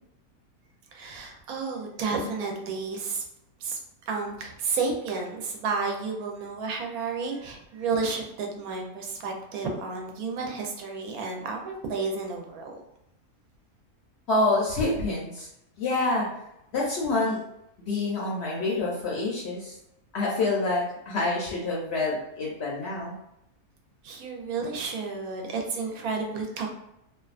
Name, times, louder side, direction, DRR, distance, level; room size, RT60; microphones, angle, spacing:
voice 1, 0.9-3.2 3.6-3.8 4.1-12.8 24.0-26.7, right 4 dB, 80° right, 2 dB, 1.0 m, -31 dB
voice 2, 14.3-15.5 15.8-16.3 16.7-17.4 17.9-19.7 20.1-23.2, left 2 dB, 65° left, -4 dB, 0.6 m, -27 dB
2.6 x 2.2 x 2.4 m, 0.82 s
omnidirectional pair, 1.5 m